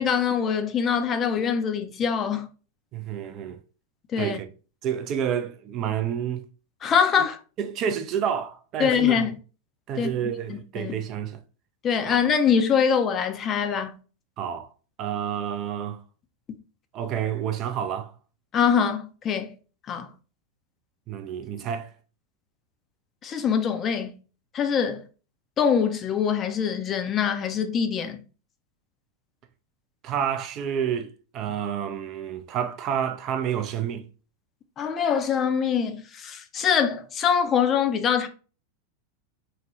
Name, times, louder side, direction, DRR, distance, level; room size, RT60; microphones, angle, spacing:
voice 1, 0.0-2.5 4.1-4.4 6.8-7.4 8.8-9.3 10.0-11.0 11.8-13.9 18.5-19.5 19.9-20.1 23.2-24.1 24.5-25.0 25.6-28.2 34.8-38.3, left 7 dB, 25° left, 0.4 m, -24 dB
voice 2, 2.9-3.6 4.2-4.5 4.8-6.4 7.2-7.3 7.6-9.3 9.9-11.4 12.1-12.2 14.4-14.7 15.0-16.0 16.9-18.1 21.1-21.9 30.0-34.1, right 8 dB, 35° right, 0.4 m, -29 dB
3.1 x 2.1 x 2.9 m
figure-of-eight pair, 90°, 0 cm